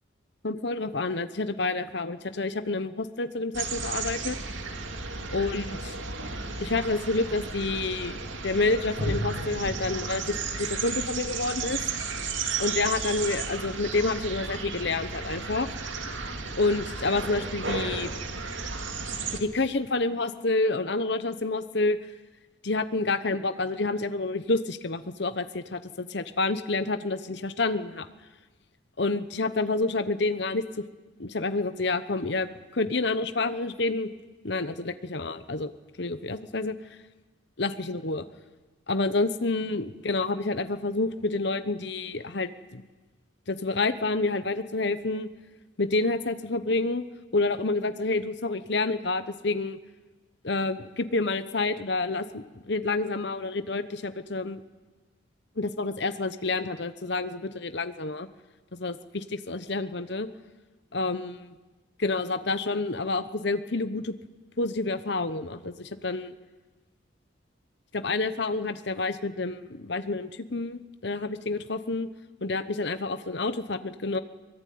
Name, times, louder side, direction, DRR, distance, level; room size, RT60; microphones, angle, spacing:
voice 1, 0.4-4.4 5.3-6.0 6.6-11.8 12.6-15.7 16.6-18.1 19.3-22.0 22.6-28.1 29.0-30.6 31.2-34.1 34.4-35.7 36.0-36.7 37.6-38.2 38.9-42.8 43.5-45.3 45.8-47.0 47.3-49.8 50.4-54.6 55.6-58.3 58.7-60.3 60.9-61.5 62.0-64.1 64.6-66.3 67.9-72.1 72.4-74.2, left 3 dB, 60° left, 11 dB, 1.0 m, -28 dB
sound 1, 3.5-19.4, right 4 dB, 75° right, 2.5 m, -33 dB
24.0 x 22.5 x 9.5 m, 1.2 s
head